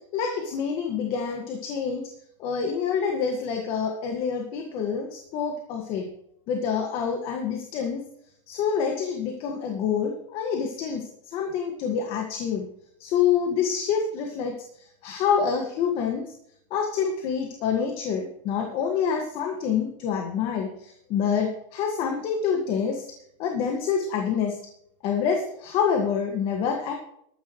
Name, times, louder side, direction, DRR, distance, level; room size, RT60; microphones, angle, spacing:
voice 1, 0.1-2.0 2.4-6.1 6.5-8.0 8.5-12.7 13.0-16.3 16.7-23.0 23.4-24.6 25.0-26.9, left 7 dB, 35° left, 3 dB, 1.7 m, -27 dB
14.5 x 13.0 x 3.1 m, 0.71 s
supercardioid pair, 160°, 17 cm